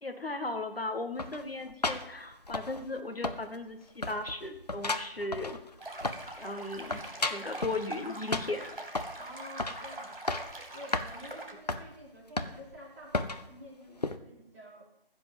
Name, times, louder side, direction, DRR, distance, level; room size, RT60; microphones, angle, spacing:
voice 1, 0.0-5.6 6.4-7.0 7.3-8.7, left 2 dB, 75° left, 6 dB, 2.1 m, -36 dB
sound 1, 1.2-3.0 3.2-3.7 4.0-6.4 6.7-7.8 8.3-9.2 9.6-9.8 10.1-10.6 10.9-11.1 11.7-11.9 12.4-12.8 13.1-13.4 14.0-14.2, left 2 dB, 45° left, 0.8 m, -34 dB
sound 2, 5.8-11.5, right 2 dB, 60° right, 3.3 m, -43 dB
voice 2, 9.2-10.2 10.7-14.8, equal, 15° right, -7 dB, 2.7 m, -49 dB
15.0 x 5.3 x 8.0 m, 0.86 s
figure-of-eight pair, 165°, 29 cm